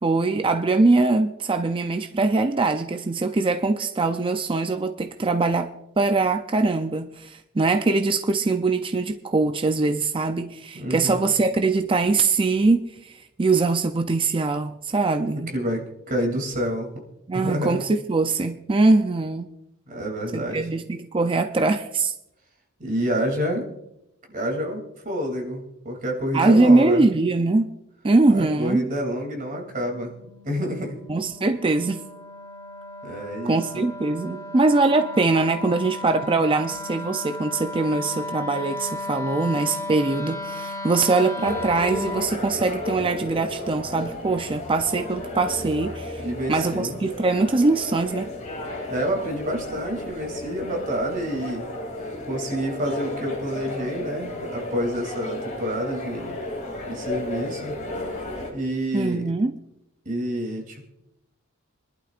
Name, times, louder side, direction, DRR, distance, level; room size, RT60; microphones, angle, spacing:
voice 1, 0.0-5.7 6.0-15.5 17.3-19.5 20.3-22.1 26.3-27.6 28.0-28.9 31.1-32.0 33.4-46.2 46.5-48.3 58.9-59.5, right 3 dB, 25° right, 7 dB, 0.5 m, -22 dB
voice 2, 10.7-11.2 15.5-16.9 17.3-17.8 19.9-20.7 22.8-23.7 24.3-27.0 28.3-30.1 30.4-31.0 33.0-33.6 46.2-47.0 48.9-51.7 52.2-56.4 56.9-57.8 58.5-59.3 60.0-60.9, equal, 40° right, 1 dB, 2.8 m, -28 dB
Wind instrument woodwind instrument, 29.4-42.3, left 2 dB, 15° left, 0.8 m, -35 dB
sound 1, 41.4-58.5, left 1 dB, 35° left, 2.8 m, -33 dB
26.5 x 11.5 x 2.5 m, 0.85 s
head